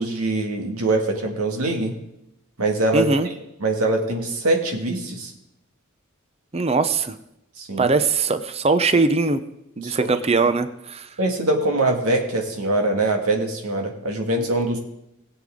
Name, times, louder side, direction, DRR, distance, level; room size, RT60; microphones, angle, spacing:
voice 1, 0.0-1.9 2.6-5.3 7.6-7.9 9.8-10.1 11.2-14.8, right 2 dB, 85° right, 2 dB, 2.1 m, -23 dB
voice 2, 2.9-3.3 6.5-7.1 7.8-9.4 9.8-11.1, right 3 dB, 30° right, 11 dB, 0.6 m, -21 dB
20.0 x 7.8 x 3.8 m, 0.85 s
head